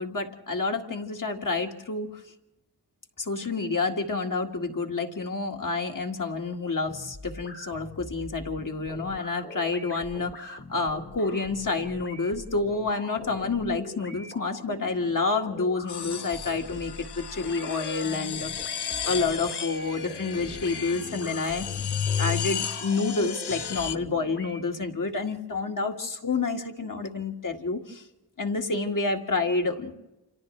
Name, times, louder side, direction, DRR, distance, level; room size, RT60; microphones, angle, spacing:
voice 1, 0.0-2.1 3.2-18.5 19.0-21.7 22.2-28.0 28.4-29.9, left 3 dB, 50° left, 3 dB, 2.0 m, -29 dB
sound 1, 6.9-24.6, left 2 dB, 30° left, 1.5 m, -44 dB
sound 2, 15.9-24.0, left 8 dB, 75° left, 0.8 m, -33 dB
30.0 x 27.0 x 3.3 m, 0.97 s
wide cardioid pair, 80°, 40 cm